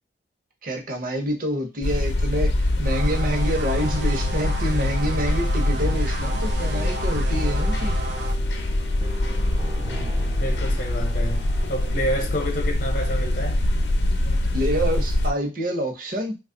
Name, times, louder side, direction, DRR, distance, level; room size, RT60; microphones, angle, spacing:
voice 1, 0.6-8.0 14.5-16.4, equal, 50° right, 0.9 m, -27 dB
sound 1, 1.8-15.3, left 1 dB, 75° left, 0.6 m, -24 dB
sound 2, 2.8-8.4, right 3 dB, 80° right, 0.6 m, -35 dB
sound 3, 6.6-13.7, right 1 dB, 25° right, 0.5 m, -41 dB
voice 2, 9.8-11.4 11.7-13.7, equal, 50° left, 0.8 m, -29 dB
3.0 x 2.3 x 3.8 m
head